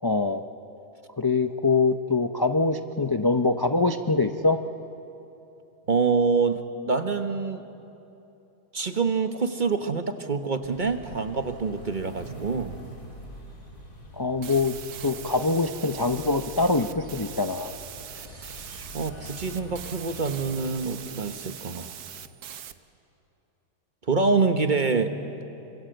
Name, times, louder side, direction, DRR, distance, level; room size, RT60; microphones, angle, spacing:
voice 1, 0.0-0.4 1.2-4.6 14.1-14.8 15.0-17.7, left 3 dB, 30° left, 6 dB, 0.4 m, -24 dB
voice 2, 5.9-7.6 8.7-12.8 18.2-21.9 24.1-25.1, right 4 dB, 35° right, 7 dB, 1.1 m, -26 dB
sound 1, 10.6-21.0, equal, 60° left, 4.4 m, -45 dB
sound 2, 14.4-22.7, right 9 dB, 75° right, 1.4 m, -42 dB
27.5 x 25.5 x 7.9 m, 2.9 s
omnidirectional pair, 1.6 m